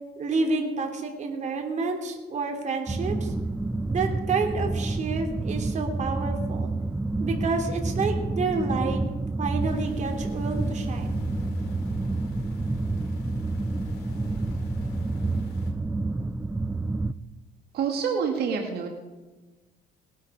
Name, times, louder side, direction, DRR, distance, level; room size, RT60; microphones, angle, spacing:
voice 1, 0.2-3.3 3.9-6.7 7.2-9.0 9.4-11.2, right 4 dB, 45° right, 3 dB, 2.9 m, -29 dB
sound 1, 2.9-17.1, right 2 dB, 10° right, 0.5 m, -29 dB
sound 2, 9.6-15.7, left 5 dB, 70° left, 3.2 m, -43 dB
voice 2, 17.7-18.9, right 6 dB, 70° right, 2 dB, 2.1 m, -27 dB
19.0 x 12.0 x 4.9 m, 1.2 s
cardioid pair, 110°, 17 cm